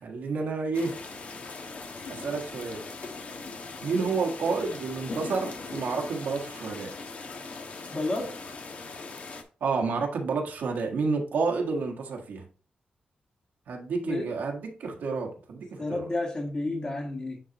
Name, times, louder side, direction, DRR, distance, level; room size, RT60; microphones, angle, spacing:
voice 1, 0.0-1.0 2.1-2.9 3.8-6.9 9.6-12.4 13.7-16.1, right 4 dB, 85° right, 1.6 m, -30 dB
sound 1, 0.7-9.4, left 3 dB, 55° left, 1.2 m, -40 dB
voice 2, 7.9-8.4 14.0-14.3 15.8-17.4, left 2 dB, 30° left, 1.9 m, -31 dB
9.7 x 4.1 x 3.0 m
wide cardioid pair, 120°, 3 cm